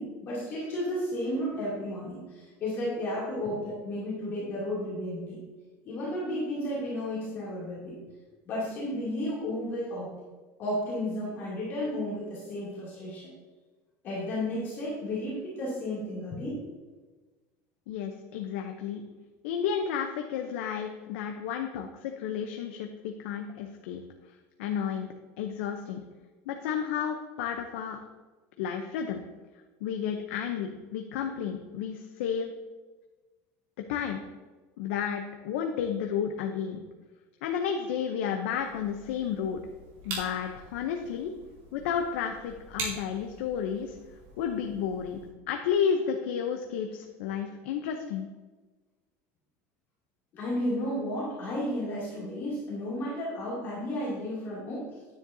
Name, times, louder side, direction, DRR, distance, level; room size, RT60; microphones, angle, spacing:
voice 1, 0.0-5.4 5.8-8.0 8.5-10.1 10.6-13.3 14.0-16.6 50.3-54.9, left 1 dB, 35° left, -8 dB, 2.8 m, -33 dB
voice 2, 17.9-19.0 19.4-24.0 24.6-25.1 25.4-26.0 26.5-28.0 28.6-29.2 29.8-32.5 33.9-34.2 34.8-36.8 37.4-39.6 40.0-41.3 41.7-44.0 44.4-45.2 45.5-48.3, left 7 dB, 85° left, 4 dB, 0.8 m, -32 dB
sound 1, 38.6-45.3, right 3 dB, 55° right, 3.0 m, -43 dB
9.9 x 9.8 x 2.8 m, 1.3 s
cardioid pair, 175°, 7 cm